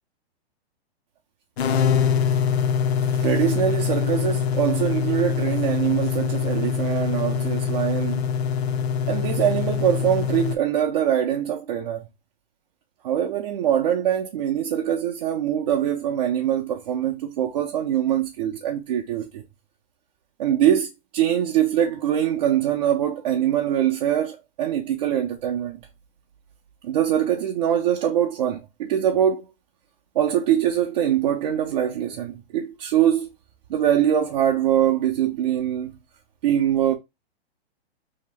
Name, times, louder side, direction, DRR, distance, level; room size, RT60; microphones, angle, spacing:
sound 1, 1.6-10.6, left 7 dB, 70° left, 0.6 m, -24 dB
voice 1, 3.1-8.2 9.1-12.0 13.0-19.4 20.4-25.8 26.8-29.4 30.2-33.3 33.7-35.9 36.4-36.9, right 10 dB, 40° right, 0.5 m, -23 dB
2.9 x 2.8 x 3.3 m
hypercardioid pair, 155°, 32 cm